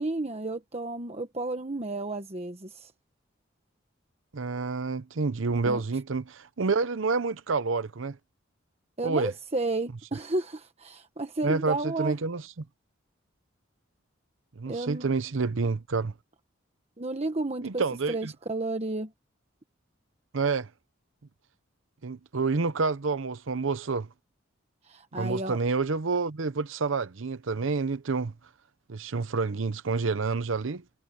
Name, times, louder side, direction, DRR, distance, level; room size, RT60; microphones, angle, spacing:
voice 1, 0.0-2.9 5.6-5.8 9.0-12.1 14.7-15.1 17.0-17.8 18.1-19.1 24.9-25.6, right 2 dB, 30° right, 1.2 m, -32 dB
voice 2, 4.3-8.2 9.0-9.3 11.4-12.5 14.6-16.1 17.6-18.3 20.3-20.7 22.0-24.1 25.1-28.3 28.9-30.8, right 4 dB, 80° right, 0.7 m, -28 dB
head